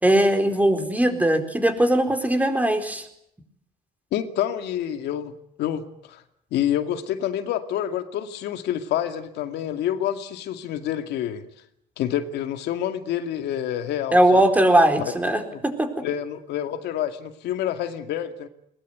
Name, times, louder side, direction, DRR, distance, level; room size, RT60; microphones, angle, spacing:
voice 1, 0.0-3.1 14.1-15.9, right 1 dB, 10° right, 6 dB, 4.3 m, -20 dB
voice 2, 4.1-6.2 6.5-11.4 12.0-14.4 15.5-15.6 16.0-18.5, left 10 dB, 80° left, 7 dB, 2.2 m, -28 dB
21.5 x 21.0 x 9.5 m, 0.72 s
cardioid pair, 110°, 17 cm